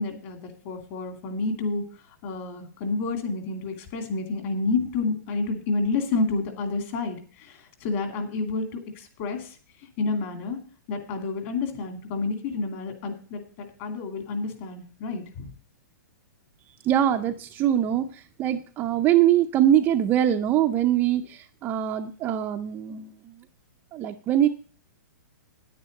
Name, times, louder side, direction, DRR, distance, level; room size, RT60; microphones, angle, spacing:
voice 1, 0.0-1.8 2.2-9.6 10.0-10.6 10.9-15.5, left 3 dB, 35° left, 5 dB, 2.5 m, -29 dB
voice 2, 16.8-23.3 23.9-24.5, right 11 dB, 20° right, 5 dB, 0.5 m, -23 dB
9.9 x 9.4 x 5.3 m, 0.40 s
hypercardioid pair, 160°, 10 cm